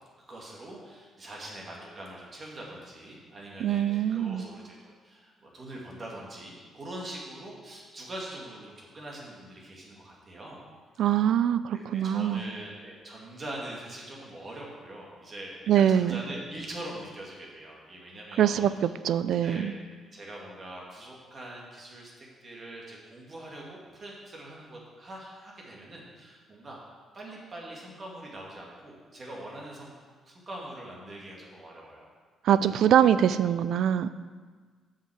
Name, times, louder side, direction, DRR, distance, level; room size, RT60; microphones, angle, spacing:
voice 1, 0.3-10.6 11.7-18.7 19.4-19.7 20.1-26.8 27.1-29.9 30.2-32.0, right 1 dB, 40° right, -3 dB, 2.3 m, -43 dB
voice 2, 3.6-4.4 11.0-12.4 15.7-16.2 18.4-19.7 32.4-34.1, right 10 dB, 75° right, 14 dB, 0.3 m, -23 dB
7.4 x 5.8 x 6.4 m, 1.5 s
cardioid pair, 90°, 0 cm